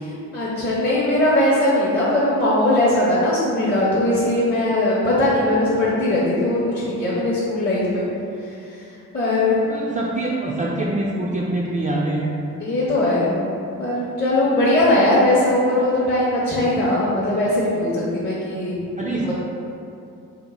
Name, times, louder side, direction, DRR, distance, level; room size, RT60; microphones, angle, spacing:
voice 1, 0.0-8.1 9.1-9.6 12.6-13.4 13.8-18.8, left 1 dB, 30° left, -8 dB, 0.7 m, -20 dB
voice 2, 9.7-12.3 19.0-19.3, right 2 dB, 25° right, -5 dB, 0.4 m, -24 dB
2.9 x 2.1 x 4.1 m, 2.6 s
cardioid pair, 65°, 33 cm